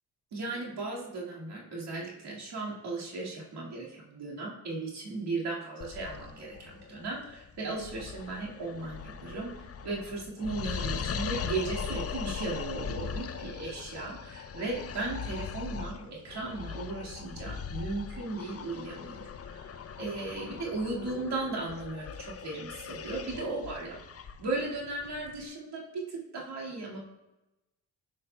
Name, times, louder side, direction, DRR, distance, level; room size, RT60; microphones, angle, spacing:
voice 1, 0.3-24.0 24.4-27.0, right 3 dB, 80° right, -4 dB, 2.0 m, -36 dB
sound 1, 5.8-25.5, left 7 dB, 40° left, 0.4 m, -40 dB
7.9 x 5.6 x 2.2 m, 0.98 s
cardioid pair, 60°, 39 cm